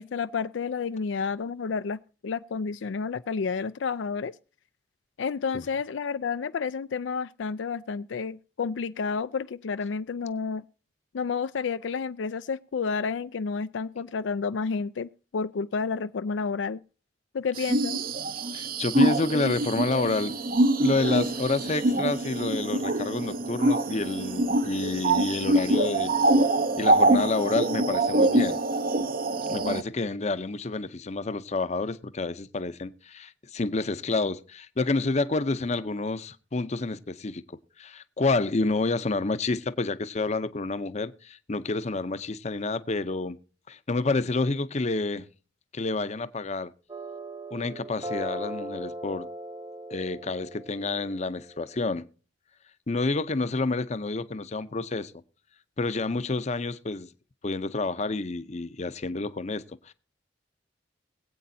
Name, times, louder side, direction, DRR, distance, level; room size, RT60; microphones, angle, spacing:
voice 1, 0.0-4.4 5.2-10.6 11.1-16.8 17.3-18.0, left 5 dB, 80° left, 0.4 m, -30 dB
sound 1, 17.6-29.8, right 2 dB, 50° right, 0.7 m, -25 dB
voice 2, 18.5-20.3 20.8-26.1 26.8-28.6 29.5-43.4 43.7-45.3 45.7-46.7 47.5-49.3 49.9-52.1 52.9-55.1 55.8-57.1 57.4-59.9, left 3 dB, 35° left, 0.6 m, -29 dB
sound 2, 46.9-52.0, right 1 dB, 25° right, 1.1 m, -39 dB
22.0 x 8.5 x 2.7 m
head